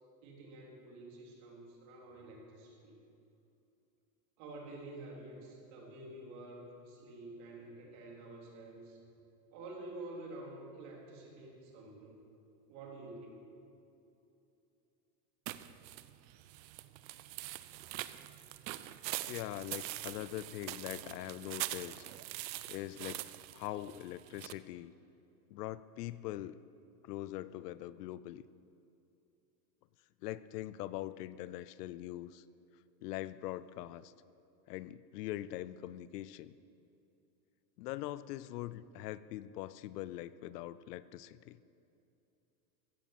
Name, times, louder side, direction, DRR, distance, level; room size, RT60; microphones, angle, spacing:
voice 1, 0.2-3.0 4.4-9.0 9.5-12.2 12.7-13.4, right 2 dB, 45° right, -1 dB, 3.4 m, -49 dB
sound 1, 15.5-24.5, right 15 dB, 85° right, 0.8 m, -43 dB
voice 2, 19.3-22.0 22.7-23.2 23.5-24.9 25.5-26.6 27.0-28.5 30.2-32.4 33.0-34.1 34.7-36.5 37.8-41.6, left 14 dB, 70° left, 17 dB, 0.6 m, -42 dB
15.5 x 8.5 x 7.2 m, 2.7 s
supercardioid pair, 160°, 50 cm